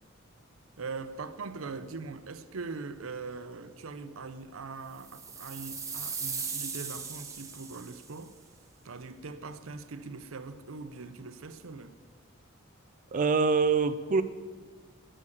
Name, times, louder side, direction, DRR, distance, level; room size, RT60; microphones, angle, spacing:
voice 1, 0.8-8.3 8.8-11.9, right 4 dB, 85° right, 0.7 m, -41 dB
sound 1, 5.0-8.2, right 5 dB, 15° right, 1.1 m, -38 dB
voice 2, 13.1-14.2, right 4 dB, 40° right, 0.4 m, -24 dB
10.0 x 6.4 x 8.4 m
head